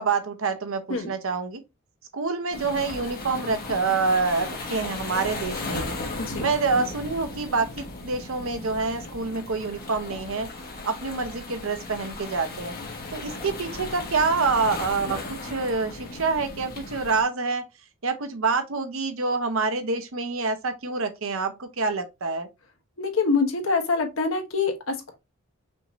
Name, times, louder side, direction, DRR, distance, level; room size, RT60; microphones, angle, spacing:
voice 1, 0.0-1.6 2.1-6.0 6.4-10.5 10.8-12.7 13.1-17.6 18.0-22.5, right 4 dB, 70° right, 0.8 m, -27 dB
sound 1, 2.5-17.2, left 2 dB, 45° left, 1.3 m, -36 dB
voice 2, 23.0-25.2, left 4 dB, 70° left, 1.1 m, -25 dB
5.6 x 2.7 x 3.0 m
head